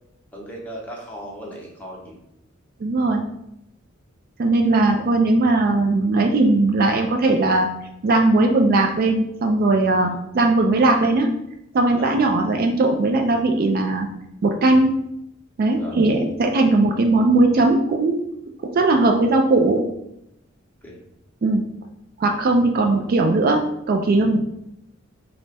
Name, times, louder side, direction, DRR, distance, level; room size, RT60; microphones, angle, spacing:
voice 1, 0.3-2.2 12.0-12.1 15.8-16.0 20.8-21.0, equal, 10° left, -3 dB, 0.8 m, -37 dB
voice 2, 2.8-3.2 4.4-7.7 8.0-11.3 11.7-14.1 14.4-15.0 15.6-18.2 18.7-19.8 21.4-21.6 22.2-24.4, right 2 dB, 45° right, 3 dB, 0.3 m, -18 dB
3.4 x 2.1 x 4.1 m, 0.81 s
head